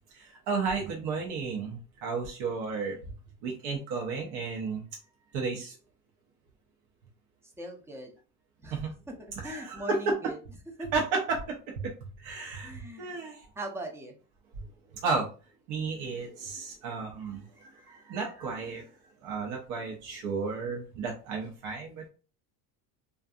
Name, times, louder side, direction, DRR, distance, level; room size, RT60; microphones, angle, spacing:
voice 1, 0.1-3.0 3.4-4.8 5.3-5.7 8.7-8.9 9.4-10.1 10.9-11.9 12.2-13.5 14.6-14.7 14.9-15.3 15.7-18.9 19.2-22.1, right 4 dB, 70° right, 0 dB, 0.7 m, -33 dB
voice 2, 7.6-8.1 8.6-8.8 9.4-10.4 10.8-10.9 12.6-13.2 13.6-14.2, right 1 dB, 5° right, 2 dB, 0.4 m, -40 dB
2.6 x 2.4 x 2.3 m, 0.35 s
cardioid pair, 125°, 41 cm